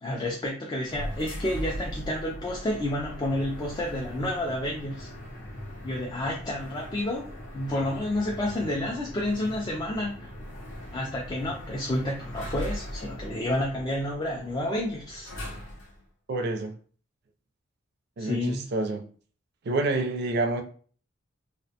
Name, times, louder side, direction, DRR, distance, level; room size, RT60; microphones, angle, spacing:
voice 1, 0.0-5.1 5.8-10.3 10.9-15.3 18.2-18.7, left 1 dB, 20° left, 0.3 m, -30 dB
sound 1, 0.8-16.0, equal, 75° left, 0.8 m, -40 dB
voice 2, 16.3-16.7 18.2-19.0 19.6-20.6, right 2 dB, 55° right, 0.4 m, -28 dB
2.4 x 2.1 x 2.7 m
head